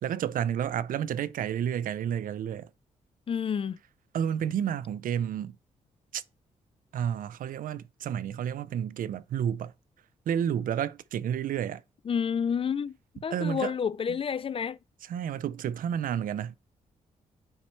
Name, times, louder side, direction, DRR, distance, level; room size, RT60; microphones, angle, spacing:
voice 1, 0.0-2.7 4.1-5.6 6.1-6.2 6.9-9.7 10.3-11.8 13.3-13.7 14.1-14.2 15.0-16.6, right 9 dB, 65° right, 0.4 m, -30 dB
voice 2, 3.3-3.8 12.1-13.0 13.2-14.8, left 7 dB, 40° left, 0.4 m, -29 dB
8.8 x 3.1 x 4.3 m
supercardioid pair, 55°, 15 cm